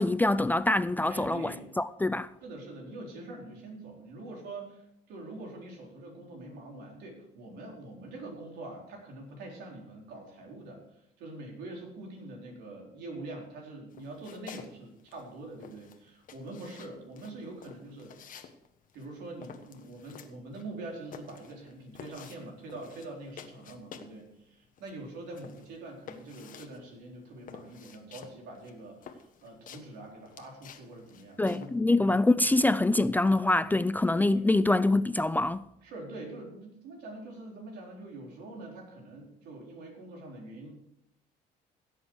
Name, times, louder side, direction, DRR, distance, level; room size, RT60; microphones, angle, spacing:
voice 1, 0.0-1.5 1.8-2.3 31.4-35.6, left 2 dB, 10° left, 0.4 m, -25 dB
voice 2, 1.1-1.7 2.4-18.2 18.9-32.3 34.3-34.4 35.8-40.7, right 2 dB, 80° right, 4.1 m, -44 dB
sound 1, 13.9-14.7 15.0-24.2 24.5-31.8, left 7 dB, 55° left, 1.3 m, -50 dB
16.5 x 7.9 x 4.8 m
cardioid pair, 110°, 17 cm